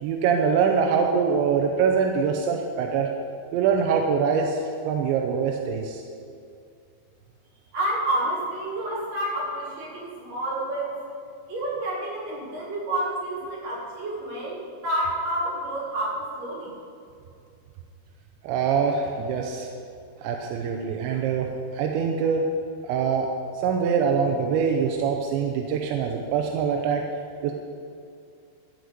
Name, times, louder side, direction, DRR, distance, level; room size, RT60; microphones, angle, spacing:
voice 1, 0.0-3.1 3.5-6.0 18.4-19.7 20.2-21.5 21.7-22.5 22.9-23.3 23.6-27.0 27.4-27.5, right 6 dB, 85° right, 3 dB, 3.0 m, -24 dB
voice 2, 7.7-10.9 11.5-16.7, right 1 dB, 60° right, -8 dB, 5.7 m, -29 dB
14.5 x 5.0 x 9.4 m, 2.4 s
omnidirectional pair, 5.2 m